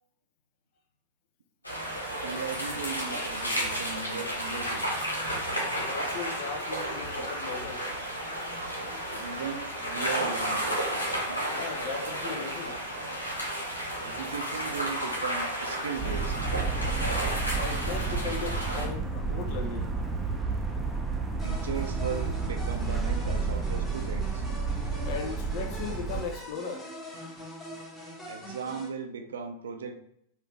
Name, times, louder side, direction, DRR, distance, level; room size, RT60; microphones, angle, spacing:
sound 1, 1.6-18.9, right 1 dB, 85° left, 1.0 m, -32 dB
voice 1, 2.1-4.9 9.2-10.6 14.0-16.4 21.4-24.4 28.3-29.9, right 6 dB, 65° right, 0.5 m, -37 dB
voice 2, 5.7-7.9 11.4-12.8 14.4-14.6 17.5-19.9 25.1-27.3, left 5 dB, 45° left, 0.6 m, -38 dB
sound 2, 16.0-26.2, right 4 dB, 10° right, 0.6 m, -31 dB
sound 3, 21.4-28.9, equal, 15° left, 1.4 m, -43 dB
4.1 x 2.6 x 3.2 m
figure-of-eight pair, 90°, 0 cm